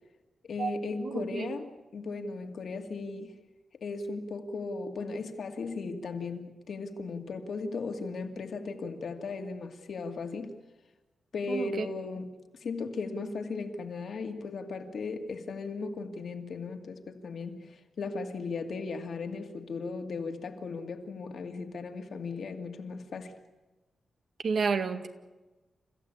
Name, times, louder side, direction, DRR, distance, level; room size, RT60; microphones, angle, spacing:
voice 1, 0.4-3.3 3.8-10.5 11.3-12.3 12.6-23.3, left 4 dB, 65° left, 2.4 m, -37 dB
voice 2, 1.0-1.5 11.5-11.9 24.4-25.1, right 5 dB, 60° right, 2.0 m, -30 dB
29.5 x 15.0 x 8.6 m
wide cardioid pair, 115°, 0 cm